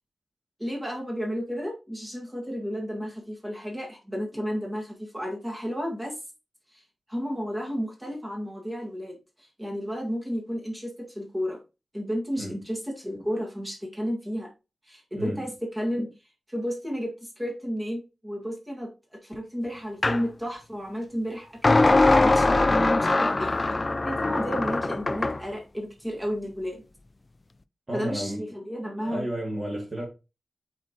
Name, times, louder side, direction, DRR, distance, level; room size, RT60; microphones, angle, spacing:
voice 1, 0.6-6.2 6.7-6.8 7.1-11.6 11.9-14.5 14.8-16.1 16.5-23.5 24.0-26.8 27.9-29.3, equal, 10° right, 1.8 m, -32 dB
voice 2, 15.1-15.5 27.9-28.5 29.0-30.1, right 1 dB, 30° right, 2.4 m, -32 dB
sound 1, 20.0-20.2 21.6-25.4, left 2 dB, 25° left, 0.3 m, -21 dB
8.5 x 4.3 x 2.9 m
wide cardioid pair, 130°, 0 cm